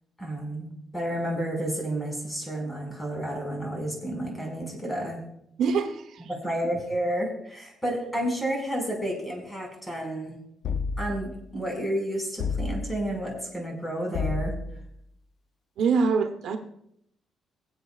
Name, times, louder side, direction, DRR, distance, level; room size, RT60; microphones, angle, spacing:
voice 1, 0.2-5.2 6.3-10.4 11.0-14.5, right 1 dB, 15° left, 1 dB, 5.3 m, -31 dB
voice 2, 5.6-6.3 15.8-16.6, right 5 dB, 75° right, 6 dB, 1.0 m, -25 dB
sound 1, 10.6-11.4 12.4-13.1 14.1-14.9, left 4 dB, 65° left, 0.6 m, -30 dB
23.5 x 8.1 x 2.4 m, 0.72 s
cardioid pair, 90°, 0 cm